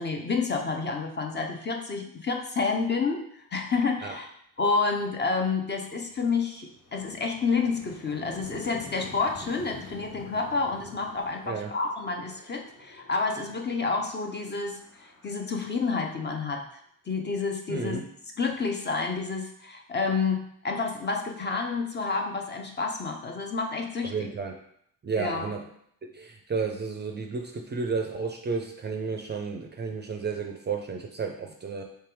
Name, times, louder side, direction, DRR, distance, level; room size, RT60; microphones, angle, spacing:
voice 1, 0.0-3.2 3.5-4.3 4.6-16.6 17.1-18.0 18.4-24.3 25.2-25.5, left 4 dB, 30° left, 3 dB, 0.5 m, -29 dB
sound 1, 5.6-16.4, left 2 dB, 45° left, 1.5 m, -48 dB
voice 2, 17.7-18.0 24.0-24.6 25.0-25.6 26.1-31.8, right 5 dB, 25° right, 3 dB, 0.4 m, -32 dB
3.4 x 3.3 x 4.6 m, 0.70 s
cardioid pair, 130°, 39 cm